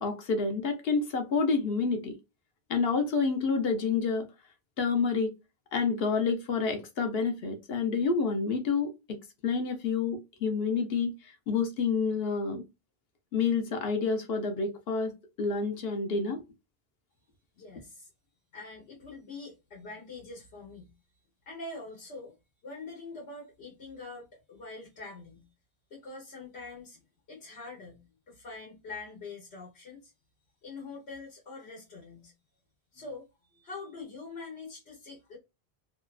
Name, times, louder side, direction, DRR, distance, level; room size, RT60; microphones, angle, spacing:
voice 1, 0.0-2.1 2.7-4.3 4.8-5.3 5.7-9.2 9.4-11.1 11.5-12.6 13.3-15.1 15.4-16.4, left 5 dB, 70° left, 0.9 m, -28 dB
voice 2, 17.5-18.1 18.5-20.9 21.5-22.4 22.6-25.5 25.9-27.0 27.3-30.1 30.6-32.3 32.9-35.4, left 3 dB, 85° left, 1.3 m, -44 dB
2.8 x 2.3 x 2.3 m
omnidirectional pair, 1.1 m